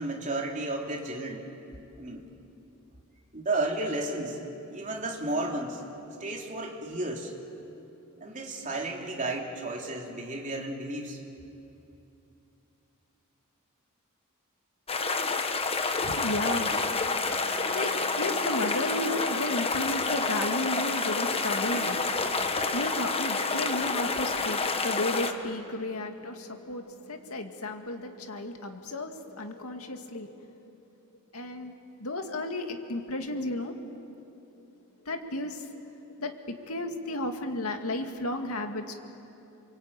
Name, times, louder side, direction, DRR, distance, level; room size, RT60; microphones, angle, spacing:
voice 1, 0.0-1.5 2.0-2.3 3.3-4.4 4.7-5.8 6.2-7.3 8.2-11.2, right 2 dB, 35° right, 0 dB, 3.3 m, -33 dB
sound 1, 14.9-25.3, left 4 dB, 25° left, 1.3 m, -28 dB
voice 2, 16.0-30.7 31.3-31.7 32.0-33.7 35.1-35.6 36.2-38.9, left 1 dB, 85° left, 5 dB, 2.1 m, -34 dB
28.5 x 23.5 x 8.9 m, 2.8 s
head